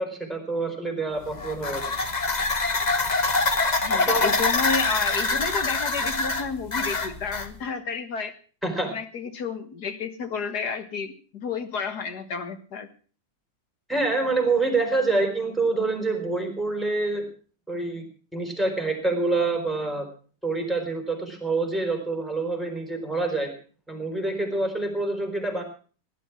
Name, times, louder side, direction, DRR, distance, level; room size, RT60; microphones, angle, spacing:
voice 1, 0.0-1.8 4.1-4.3 8.6-8.9 13.9-17.3 17.7-18.1 18.3-20.1 20.4-23.5 23.9-25.6, right 3 dB, ahead, 4 dB, 4.2 m, -26 dB
sound 1, 1.2-7.5, left 3 dB, 30° left, 1.2 m, -25 dB
voice 2, 3.8-8.3 8.8-12.9, left 5 dB, 70° left, 9 dB, 2.1 m, -31 dB
18.0 x 11.0 x 6.0 m, 0.40 s
omnidirectional pair, 1.8 m